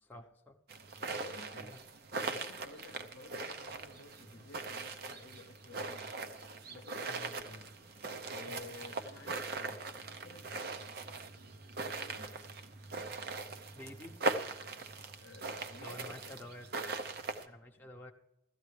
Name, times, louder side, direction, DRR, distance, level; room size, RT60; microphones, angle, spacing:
voice 1, 0.1-0.6 1.7-1.8 2.2-2.4 7.1-7.4 8.5-8.7 13.7-14.1 14.8-14.9 15.8-16.7 17.5-18.1, left 1 dB, 10° left, 0.8 m, -50 dB
sound 1, 0.7-17.5, right 3 dB, 50° right, 0.7 m, -41 dB
voice 2, 1.1-1.8 2.2-6.3 6.7-7.8 8.3-10.8 11.7-12.4 15.2-16.4, left 3 dB, 65° left, 0.8 m, -53 dB
16.0 x 13.5 x 3.3 m
head